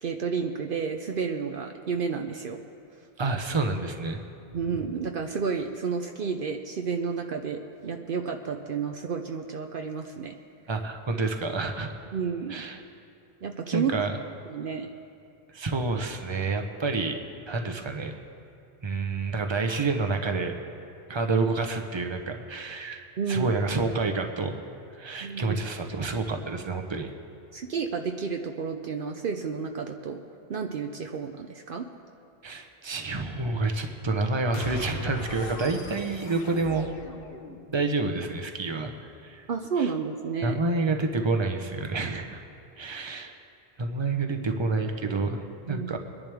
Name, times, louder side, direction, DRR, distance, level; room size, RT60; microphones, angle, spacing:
voice 1, 0.0-2.6 4.5-10.4 12.1-12.5 13.4-13.9 14.5-14.9 23.2-23.5 25.2-25.6 27.5-30.2 30.5-31.9 39.5-40.6 45.7-45.9, right 5 dB, 60° right, 4 dB, 0.8 m, -31 dB
voice 2, 3.2-4.2 10.7-11.9 12.5-12.8 13.7-14.2 15.5-17.2 17.5-18.1 18.8-20.6 21.1-24.6 25.0-27.1 32.4-36.9 37.7-38.9 39.2-39.5 39.8-39.9 40.4-42.4 42.8-43.3 43.8-46.0, right 3 dB, 30° right, 5 dB, 0.9 m, -28 dB
sound 1, 34.5-37.9, left 4 dB, 60° left, 1.1 m, -40 dB
24.0 x 10.5 x 3.5 m, 2.6 s
omnidirectional pair, 1.1 m